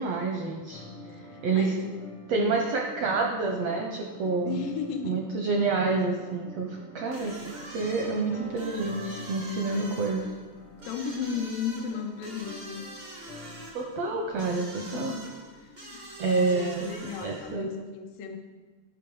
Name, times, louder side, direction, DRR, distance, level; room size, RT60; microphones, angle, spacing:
voice 1, 0.0-0.8 1.1-1.7 2.3-4.6 5.0-10.3 13.7-15.2 16.2-16.8 17.2-17.7, right 3 dB, 80° right, 1 dB, 1.4 m, -28 dB
sound 1, 0.7-13.7, equal, 75° left, 1.2 m, -47 dB
voice 2, 1.0-2.0 2.3-2.6 3.1-3.4 4.5-5.2 9.7-10.1 10.8-12.9 14.8-15.2 15.6-18.4, left 7 dB, 90° left, 3 dB, 2.5 m, -35 dB
sound 2, 7.1-17.5, right 1 dB, 50° right, 0.5 m, -45 dB
12.0 x 5.2 x 4.7 m, 1.3 s
omnidirectional pair, 3.8 m